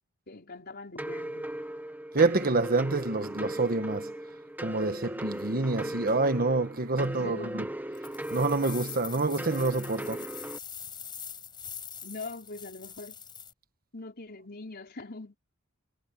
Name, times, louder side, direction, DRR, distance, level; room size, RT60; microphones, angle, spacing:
voice 1, 0.3-1.5 7.0-7.6 12.0-13.2 13.9-15.4, left 2 dB, 50° left, 4.4 m, -42 dB
sound 1, 1.0-10.6, right 1 dB, 10° right, 1.2 m, -38 dB
voice 2, 2.1-4.1 4.6-7.6 8.3-10.3, right 3 dB, 45° right, 1.4 m, -27 dB
sound 2, 7.9-13.5, left 7 dB, 20° left, 4.8 m, -43 dB
head